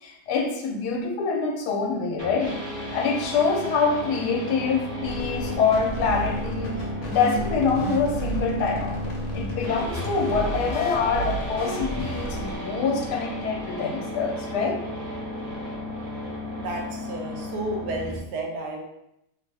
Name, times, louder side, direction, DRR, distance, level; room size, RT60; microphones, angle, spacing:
voice 1, 0.0-2.6 2.9-6.9 7.1-14.8, left 5 dB, 85° left, 2 dB, 1.2 m, -25 dB
sound 1, 2.2-18.2, equal, 70° right, 1.4 m, -33 dB
sound 2, 5.0-12.5, right 1 dB, 60° left, 0.9 m, -33 dB
voice 2, 16.6-18.8, right 2 dB, 85° right, 1 dB, 1.2 m, -32 dB
3.2 x 2.1 x 3.2 m, 0.83 s
omnidirectional pair, 1.7 m